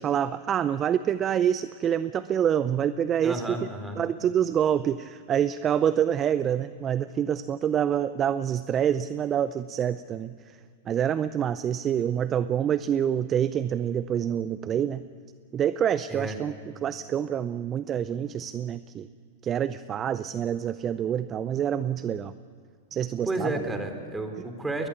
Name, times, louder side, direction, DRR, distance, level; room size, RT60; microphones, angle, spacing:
voice 1, 0.0-3.6 4.0-10.6 10.9-15.0 15.5-16.5 16.8-19.1 19.4-22.3 22.9-23.5, right 9 dB, 30° right, 15 dB, 0.6 m, -26 dB
voice 2, 3.2-4.0 16.1-16.4 23.2-24.9, right 2 dB, 10° right, 6 dB, 3.2 m, -31 dB
21.0 x 21.0 x 8.4 m, 2.2 s
hypercardioid pair, 105°, 0 cm